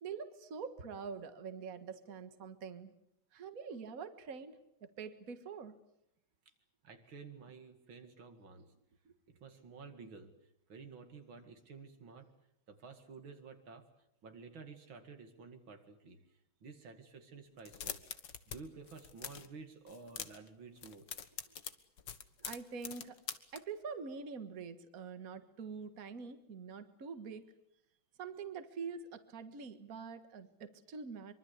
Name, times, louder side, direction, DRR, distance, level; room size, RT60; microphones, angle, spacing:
voice 1, 0.0-2.9 3.3-5.8 9.1-9.2 22.4-23.2 23.5-27.5 28.2-31.3, right 5 dB, 45° right, 10 dB, 1.9 m, -45 dB
voice 2, 6.8-8.7 9.3-10.4 10.7-12.3 12.7-13.9 14.2-16.2 16.6-18.0 18.5-21.1, right 4 dB, 80° right, 6 dB, 3.0 m, -52 dB
sound 1, 17.6-18.6 18.8-19.5 19.9-20.5 20.8-23.6, left 8 dB, 65° left, 2.0 m, -44 dB
24.5 x 24.0 x 8.3 m, 0.78 s
omnidirectional pair, 2.1 m